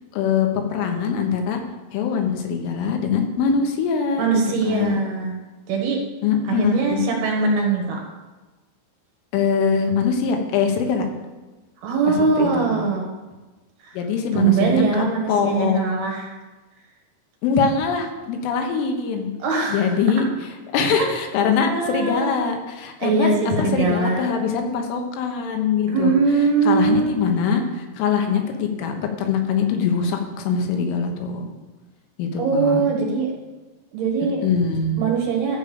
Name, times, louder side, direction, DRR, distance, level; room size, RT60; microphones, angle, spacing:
voice 1, 0.1-1.6 1.9-5.0 6.2-7.1 9.3-11.1 12.1-12.7 14.0-15.8 17.4-19.3 19.7-20.3 20.7-26.1 26.7-31.5 32.2-32.8 34.4-35.0, left 6 dB, 90° left, 4 dB, 3.7 m, -23 dB
voice 2, 4.2-5.4 5.7-6.0 6.5-8.0 11.8-13.1 13.8-14.0 14.3-16.3 19.4-20.0 20.9-21.1 21.4-22.5 23.0-24.3 25.9-27.1 32.4-33.3 33.9-34.4 35.0-35.6, right 4 dB, 65° right, 0 dB, 3.0 m, -21 dB
13.5 x 5.1 x 6.9 m, 1.2 s
omnidirectional pair, 5.5 m